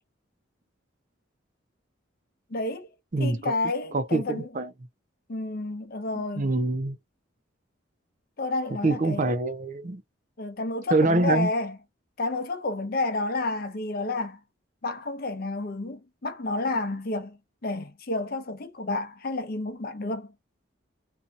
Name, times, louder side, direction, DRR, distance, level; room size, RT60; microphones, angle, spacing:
voice 1, 2.5-2.9 3.2-4.5 5.3-6.5 8.4-9.2 10.4-11.8 12.2-14.4 14.8-20.3, left 2 dB, 50° left, 0.6 m, -30 dB
voice 2, 3.1-3.5 3.9-4.7 6.1-7.0 8.8-10.0 10.9-11.5, right 2 dB, 40° right, 0.5 m, -25 dB
2.6 x 2.3 x 2.6 m
head